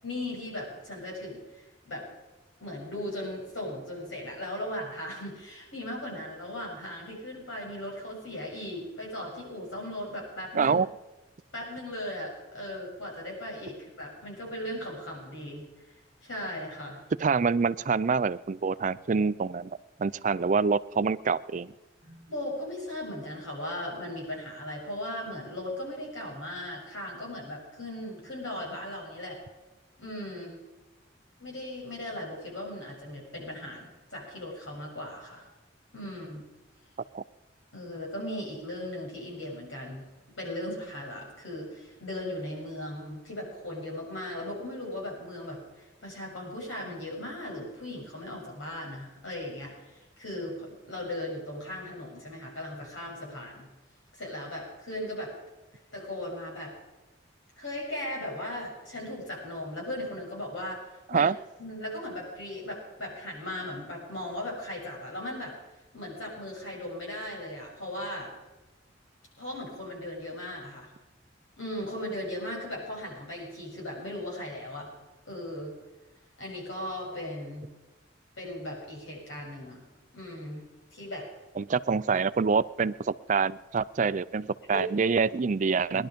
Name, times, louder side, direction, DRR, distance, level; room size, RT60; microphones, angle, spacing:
voice 1, 0.0-2.1 2.6-10.8 11.5-15.7 16.2-17.0 22.0-29.4 30.0-30.6 31.4-35.4 35.9-36.4 37.7-40.1 40.4-53.7 54.1-55.3 55.9-56.8 57.6-60.8 61.1-61.3 61.6-65.6 65.9-68.3 69.4-70.9 71.6-74.9 75.3-75.7 76.4-77.7 78.4-79.8 80.1-80.6 80.9-81.3 84.7-84.9, left 1 dB, 90° left, -1 dB, 7.0 m, -37 dB
voice 2, 10.5-10.9 17.2-19.7 20.0-21.7 37.1-37.2 61.1-61.4 81.6-86.1, right 5 dB, 40° right, 16 dB, 0.4 m, -26 dB
19.5 x 11.5 x 5.2 m, 1.1 s
head